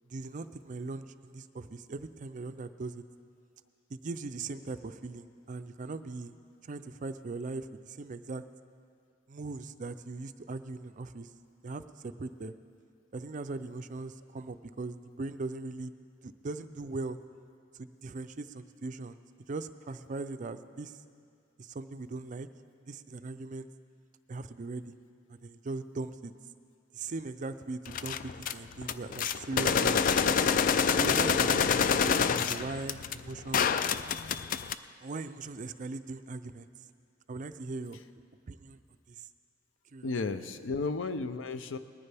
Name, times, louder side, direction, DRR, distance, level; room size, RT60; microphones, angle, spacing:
voice 1, 0.1-3.0 3.9-6.3 6.6-8.4 9.3-11.3 11.6-12.5 13.1-15.9 16.2-17.2 17.7-19.2 19.5-21.0 21.6-22.5 22.9-23.7 24.3-24.9 25.3-26.3 26.9-30.4 31.0-33.7 35.0-36.7 37.3-38.0 38.5-38.8 39.1-39.3 39.9-40.1, right 3 dB, 40° right, 11 dB, 0.4 m, -39 dB
sound 1, 27.9-28.5 28.8-34.7, left 6 dB, 45° left, 0.3 m, -27 dB
voice 2, 40.0-41.8, left 3 dB, 85° left, 11 dB, 0.6 m, -33 dB
19.5 x 14.0 x 3.4 m, 2.3 s
head